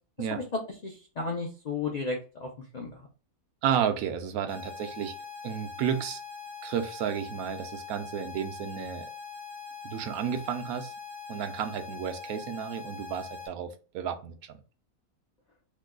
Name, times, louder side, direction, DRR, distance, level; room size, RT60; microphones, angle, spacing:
voice 1, 0.8-3.1, left 4 dB, 75° left, 0 dB, 0.3 m, -34 dB
voice 2, 3.6-5.1 5.4-6.2 6.6-9.1 9.8-10.9 11.3-14.6, right 8 dB, 80° right, 7 dB, 1.0 m, -32 dB
sound 1, 4.5-13.5, left 6 dB, 55° right, 0.6 m, -42 dB
3.1 x 2.2 x 3.5 m, 0.36 s
omnidirectional pair, 1.5 m